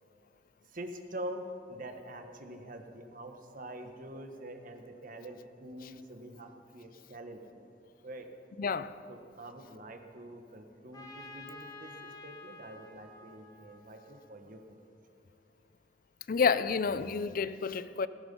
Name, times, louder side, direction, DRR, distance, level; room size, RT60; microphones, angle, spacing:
voice 1, 0.7-7.7 8.0-8.3 9.1-14.8, right 1 dB, 50° right, 1.4 m, -45 dB
voice 2, 8.6-8.9 16.3-18.1, left 5 dB, 50° left, 0.5 m, -29 dB
Trumpet, 10.9-14.7, left 2 dB, 20° left, 1.6 m, -50 dB
16.5 x 15.5 x 5.4 m
head